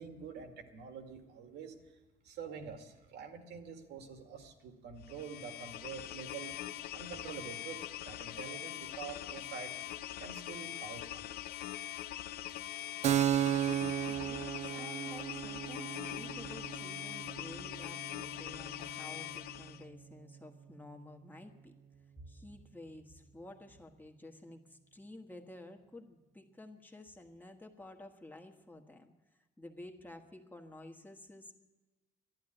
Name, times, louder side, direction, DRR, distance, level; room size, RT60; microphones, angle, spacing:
voice 1, 0.0-1.7 2.2-6.5 6.9-9.7 10.2-11.3, right 6 dB, 80° right, 5 dB, 2.1 m, -46 dB
sound 1, 5.0-19.8, left 13 dB, 65° left, 0.6 m, -43 dB
Keyboard (musical), 13.0-20.3, right 11 dB, 45° right, 0.4 m, -36 dB
voice 2, 13.5-21.8 22.2-31.5, left 1 dB, 10° left, 3 dB, 1.5 m, -52 dB
12.0 x 11.5 x 9.9 m, 1.2 s
cardioid pair, 110°, 17 cm